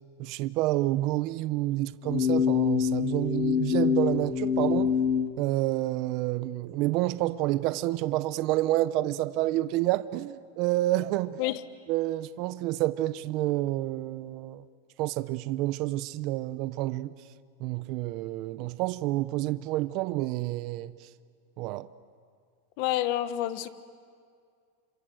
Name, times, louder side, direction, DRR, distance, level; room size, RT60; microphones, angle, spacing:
voice 1, 0.2-4.9 5.4-11.4 11.9-14.6 15.0-17.1 17.6-20.9 21.6-21.9, right 16 dB, 40° right, 0.6 m, -29 dB
sound 1, 2.0-5.3, left 7 dB, 30° left, 2.3 m, -25 dB
voice 2, 22.8-23.7, left 13 dB, 50° left, 1.1 m, -28 dB
28.0 x 26.5 x 7.8 m
supercardioid pair, 155°, 0 cm